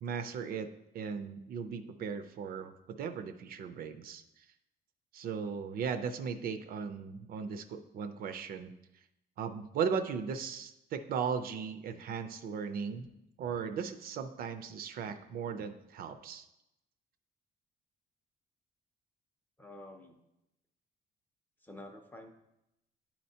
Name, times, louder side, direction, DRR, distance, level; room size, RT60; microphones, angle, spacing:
voice 1, 0.0-4.2 5.1-8.7 9.4-13.1 13.4-16.5, right 6 dB, 60° right, 9 dB, 0.4 m, -37 dB
voice 2, 19.6-20.2 21.6-22.3, left 1 dB, 10° left, 4 dB, 0.5 m, -49 dB
10.5 x 4.3 x 2.7 m, 0.88 s
cardioid pair, 175°, 18 cm